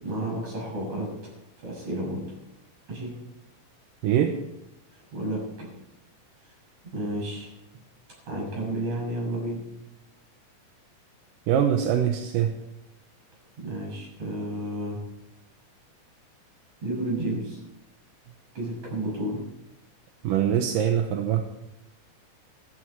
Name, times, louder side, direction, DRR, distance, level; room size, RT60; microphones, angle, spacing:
voice 1, 0.0-1.1 1.6-2.3 2.9-3.2 4.9-5.7 6.8-7.5 8.3-9.7 13.6-15.0 16.8-17.6 18.5-19.5, right 1 dB, 55° right, -3 dB, 8.4 m, -31 dB
voice 2, 4.0-4.3 11.5-12.5 20.2-21.4, right 9 dB, 80° right, 5 dB, 2.6 m, -23 dB
16.0 x 14.0 x 4.6 m, 0.88 s
omnidirectional pair, 4.0 m